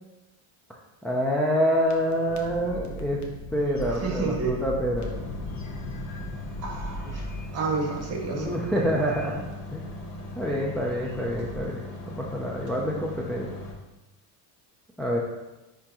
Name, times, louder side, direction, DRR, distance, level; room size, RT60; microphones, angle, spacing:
voice 1, 1.0-3.2 3.5-5.1 8.3-10.0 10.4-13.5 15.0-15.2, equal, ahead, -5 dB, 0.4 m, -27 dB
sound 1, 1.7-11.6, left 1 dB, 40° left, 0.9 m, -39 dB
voice 2, 4.0-4.6 6.6-7.2 7.5-8.5, right 4 dB, 35° right, 0 dB, 1.5 m, -30 dB
sound 2, 5.0-13.7, left 2 dB, 85° left, 1.7 m, -40 dB
10.0 x 3.6 x 2.9 m, 1.0 s
cardioid pair, 140°, 46 cm